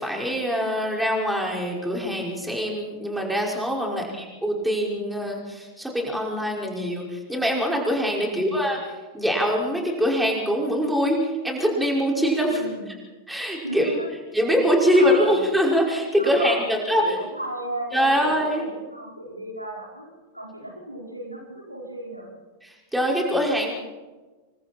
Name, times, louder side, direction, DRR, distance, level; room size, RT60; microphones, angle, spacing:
voice 1, 0.0-8.8 9.1-12.6 13.3-13.9 14.3-17.1 17.9-18.6 22.6-23.7, equal, 5° right, -1 dB, 5.5 m, -23 dB
voice 2, 3.9-4.3 8.2-8.6 12.4-12.9 13.6-14.2 14.9-15.5 16.1-16.7 17.0-17.9 18.2-22.3, right 1 dB, 90° right, -1 dB, 5.1 m, -35 dB
27.5 x 24.5 x 4.5 m, 1.2 s
figure-of-eight pair, 90°, 0 cm